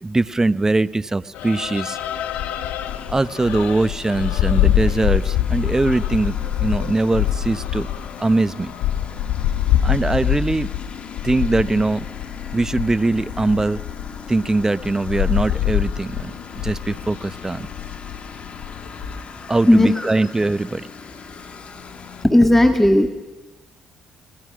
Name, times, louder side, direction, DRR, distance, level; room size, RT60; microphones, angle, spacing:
voice 1, 0.0-2.0 3.1-7.9 8.2-8.7 9.8-10.7 11.2-12.1 12.5-13.8 14.3-17.7 19.5-20.9, right 2 dB, 20° right, 16 dB, 0.8 m, -21 dB
sound 1, 1.3-19.2, left 11 dB, 85° left, 1.1 m, -25 dB
Engine, 2.9-22.2, left 5 dB, 50° left, 2.3 m, -40 dB
voice 2, 19.7-20.1 22.2-23.1, left 1 dB, 10° left, 6 dB, 1.9 m, -14 dB
29.5 x 19.5 x 6.2 m, 1.0 s
supercardioid pair, 60°, 3 cm